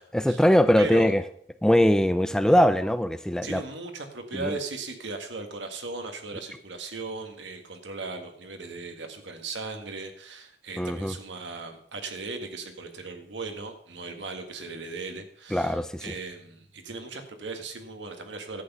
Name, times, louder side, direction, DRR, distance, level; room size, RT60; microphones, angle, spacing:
voice 1, 0.1-1.2 1.6-3.6 4.3-4.6 10.8-11.1 15.5-16.0, equal, 5° left, 11 dB, 0.4 m, -21 dB
voice 2, 0.8-1.1 3.4-18.6, right 3 dB, 90° right, 5 dB, 1.7 m, -37 dB
11.5 x 8.3 x 5.5 m, 0.65 s
head